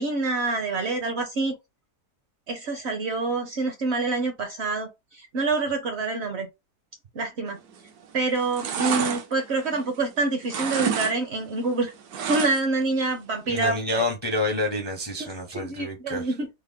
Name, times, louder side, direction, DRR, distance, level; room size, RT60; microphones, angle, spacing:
voice 1, 0.0-1.5 2.5-4.9 5.1-6.5 7.1-7.6 8.1-11.9 12.3-14.0 15.2-15.3 15.5-16.5, right 3 dB, 55° right, 0.8 m, -26 dB
sound 1, 7.7-8.0 8.3-10.1 10.4-11.1 11.4-12.8 13.2-13.3, right 7 dB, 75° right, 1.1 m, -29 dB
voice 2, 13.5-16.3, left 2 dB, 30° left, 0.5 m, -28 dB
3.6 x 2.0 x 3.5 m
omnidirectional pair, 1.6 m